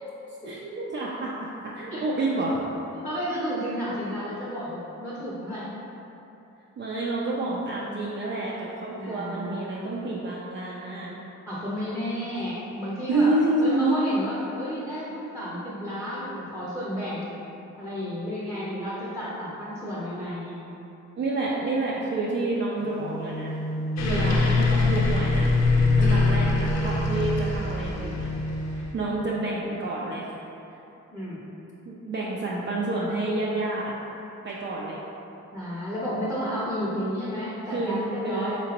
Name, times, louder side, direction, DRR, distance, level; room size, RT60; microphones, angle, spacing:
voice 1, 0.5-2.6 6.8-11.1 13.1-14.0 21.2-23.6 24.1-25.5 26.0-28.3 28.7-30.3 30.7-30.8 31.9-33.9 34.4-35.0 37.7-38.6, right 2 dB, 40° right, -5 dB, 0.4 m, -28 dB
voice 2, 2.9-5.7 9.0-10.0 11.5-13.3 13.6-17.3 17.8-20.5 24.0-24.3 31.1-31.4 35.5-38.6, equal, 5° left, -9 dB, 0.6 m, -32 dB
sound 1, 22.8-28.8, right 2 dB, 75° right, 0.9 m, -31 dB
sound 2, 24.0-28.9, left 4 dB, 60° left, 0.6 m, -23 dB
3.3 x 2.9 x 2.9 m, 3.0 s
cardioid pair, 90°, 30 cm